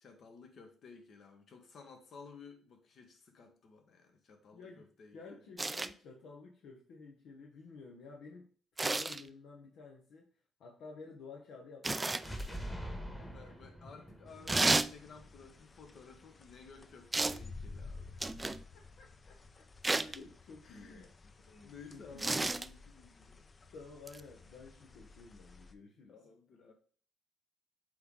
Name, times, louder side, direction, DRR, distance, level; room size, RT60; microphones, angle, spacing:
voice 1, 0.0-5.3 13.2-18.3 20.6-21.1 21.6-23.4 26.1-26.7, left 5 dB, 60° left, 1.4 m, -55 dB
voice 2, 4.5-8.5 8.8-10.2 10.6-12.7 13.2-13.5 19.0-19.6 20.0-21.1 21.5-22.4 23.3-23.4 23.7-26.1, left 4 dB, 80° left, 1.0 m, -53 dB
sound 1, 5.6-5.9 8.8-9.2 11.8-12.3 14.5-14.9 17.1-17.4 18.2-18.6 19.8-20.2 22.2-22.7 24.1-24.2, right 2 dB, 20° right, 0.3 m, -31 dB
sound 2, 12.1-16.0, equal, 10° left, 1.4 m, -45 dB
sound 3, 14.3-25.7, left 3 dB, 35° left, 0.5 m, -53 dB
7.7 x 3.2 x 3.8 m
cardioid pair, 90°, 0 cm